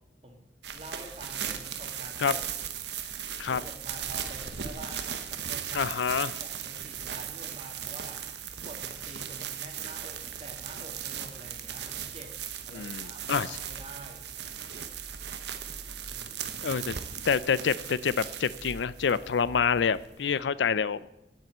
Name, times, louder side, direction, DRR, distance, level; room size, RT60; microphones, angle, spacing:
voice 1, 0.2-2.4 3.4-5.9 6.3-8.2 8.6-12.3 12.6-14.2 16.1-16.8 20.2-20.5, right 1 dB, 35° right, 3 dB, 2.0 m, -47 dB
sound 1, 0.6-20.4, right 8 dB, 70° right, 1.0 m, -38 dB
voice 2, 5.7-6.3 12.7-13.6 16.6-17.0 17.2-21.0, left 6 dB, 85° left, 17 dB, 0.5 m, -27 dB
9.2 x 8.2 x 7.8 m, 0.86 s
head